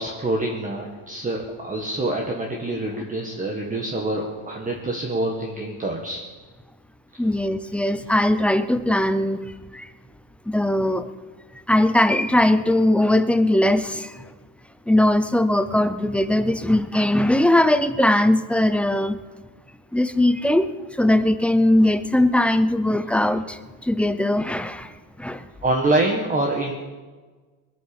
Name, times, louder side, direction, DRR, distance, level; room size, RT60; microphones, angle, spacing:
voice 1, 0.0-6.2 7.1-7.2 25.6-26.7, right 2 dB, 15° right, 0 dB, 1.6 m, -26 dB
voice 2, 7.2-9.9 10.5-11.1 11.7-14.2 14.9-19.2 19.9-20.7 21.0-24.9 25.2-25.5, left 1 dB, 5° left, 11 dB, 0.4 m, -20 dB
21.0 x 9.3 x 7.1 m, 1.4 s
cardioid pair, 140°, 44 cm